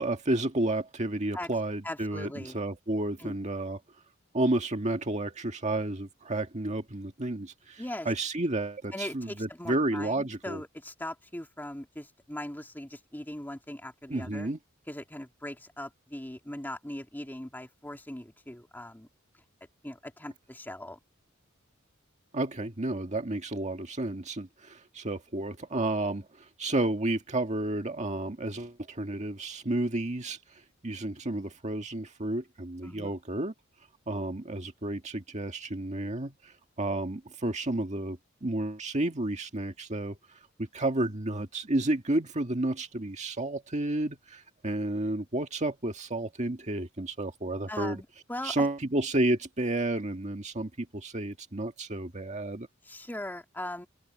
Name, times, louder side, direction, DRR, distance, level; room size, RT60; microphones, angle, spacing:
voice 1, 0.0-3.8 4.3-10.6 14.1-14.6 22.3-33.5 34.1-40.2 40.6-48.0 48.4-52.7, right 2 dB, 35° right, 1.7 m, -31 dB
voice 2, 1.8-2.6 3.2-3.4 7.8-8.1 8.9-14.5 14.9-19.1 19.8-21.0 32.8-33.2 47.7-48.7 52.8-53.9, left 1 dB, 10° left, 2.7 m, -40 dB
open air
head